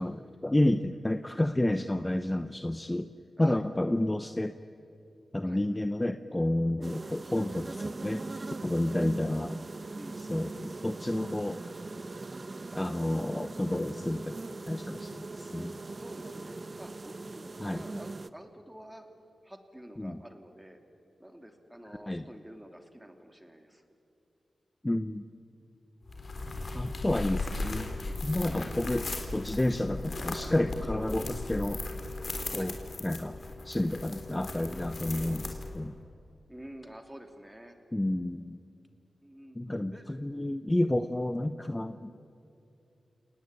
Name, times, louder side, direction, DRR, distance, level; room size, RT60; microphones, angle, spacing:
voice 1, 0.0-3.1 3.4-4.5 5.3-8.2 8.6-9.6 10.2-11.6 12.7-15.8 17.6-17.8 20.0-20.2 22.1-22.2 24.8-25.2 26.7-27.9 28.2-29.1 29.3-31.8 32.5-32.7 33.0-33.4 33.6-36.0 37.9-38.6 39.5-42.1, left 1 dB, 15° left, 10 dB, 0.8 m, -30 dB
voice 2, 3.4-3.7 5.4-5.6 6.8-7.0 8.9-9.1 9.9-10.3 16.0-19.0 19.4-20.8 21.2-23.8 28.4-28.9 32.5-32.7 36.5-37.8 39.2-39.6 39.9-40.3, right 1 dB, 10° right, 5 dB, 3.1 m, -48 dB
sound 1, 6.8-18.3, right 3 dB, 40° right, 0.9 m, -40 dB
sound 2, 26.1-35.9, left 2 dB, 50° left, 3.9 m, -37 dB
30.0 x 19.0 x 9.1 m, 2.8 s
cardioid pair, 65°, 0 cm